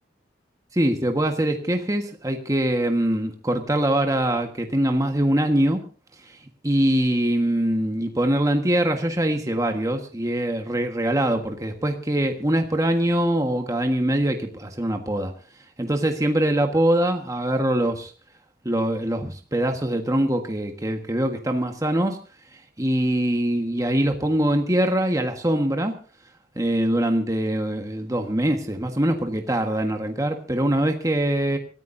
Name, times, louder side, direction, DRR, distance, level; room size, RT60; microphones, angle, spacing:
voice 1, 0.7-5.8 6.6-15.3 15.8-18.1 18.6-22.2 22.8-25.9 26.5-31.6, right 1 dB, 20° right, 4 dB, 1.5 m, -23 dB
27.0 x 14.5 x 2.7 m, 0.35 s
head